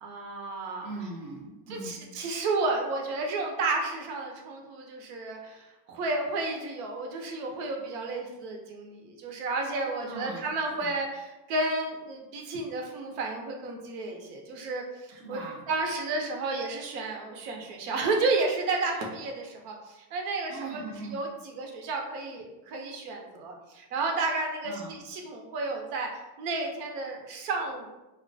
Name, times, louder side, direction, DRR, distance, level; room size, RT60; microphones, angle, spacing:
voice 1, 0.0-0.9 1.7-15.4 15.7-20.8 21.1-26.1 26.4-27.9, right 3 dB, 75° right, 2 dB, 0.7 m, -32 dB
voice 2, 0.8-2.0 10.0-10.5 10.8-10.9 15.2-15.6 20.5-21.1 24.6-24.9, right 3 dB, 35° right, -3 dB, 0.5 m, -40 dB
2.3 x 2.1 x 2.6 m, 1.0 s
supercardioid pair, 130°, 48 cm